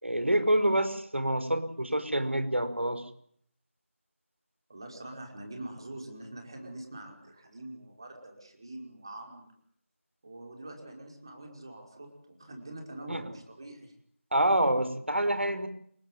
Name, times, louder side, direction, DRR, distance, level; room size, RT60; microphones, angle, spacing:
voice 1, 0.0-3.1 13.1-13.2 14.3-15.7, right 1 dB, 60° right, 10 dB, 5.4 m, -27 dB
voice 2, 4.7-9.5 10.2-13.9, right 1 dB, 20° right, 3 dB, 5.3 m, -44 dB
28.5 x 17.0 x 9.5 m, 0.64 s
figure-of-eight pair, 175°, 7 cm